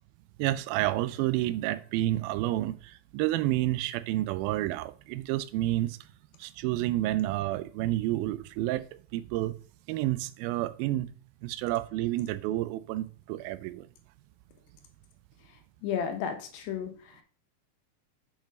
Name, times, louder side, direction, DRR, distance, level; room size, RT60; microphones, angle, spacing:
voice 1, 0.4-6.0 6.4-8.9 9.1-9.6 9.9-11.1 11.4-13.9, right 15 dB, 80° right, 2.2 m, -29 dB
voice 2, 15.8-17.2, left 7 dB, 75° left, 2.4 m, -33 dB
7.5 x 4.8 x 5.2 m
omnidirectional pair, 4.5 m